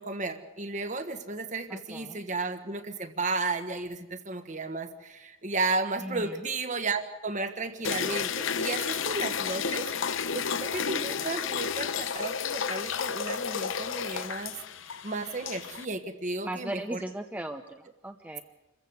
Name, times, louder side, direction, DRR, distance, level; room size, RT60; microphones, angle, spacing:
voice 1, 0.0-9.9 10.3-14.6 15.0-17.0, right 3 dB, 35° right, 8 dB, 1.4 m, -33 dB
voice 2, 1.7-2.2 6.0-6.5 16.4-18.4, right 1 dB, 10° right, 5 dB, 0.7 m, -38 dB
sound 1, 7.8-15.8, left 6 dB, 70° left, 0.8 m, -32 dB
27.5 x 15.0 x 8.1 m, 1.0 s
head